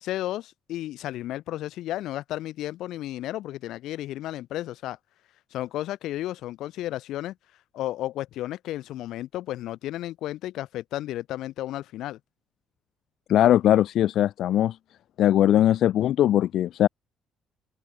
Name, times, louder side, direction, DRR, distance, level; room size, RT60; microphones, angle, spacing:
voice 1, 0.0-5.0 5.5-7.4 7.7-12.2, left 14 dB, 85° left, 1.8 m, -33 dB
voice 2, 13.3-14.8 15.2-16.9, left 12 dB, 70° left, 0.6 m, -20 dB
open air
cardioid pair, 135°, 0 cm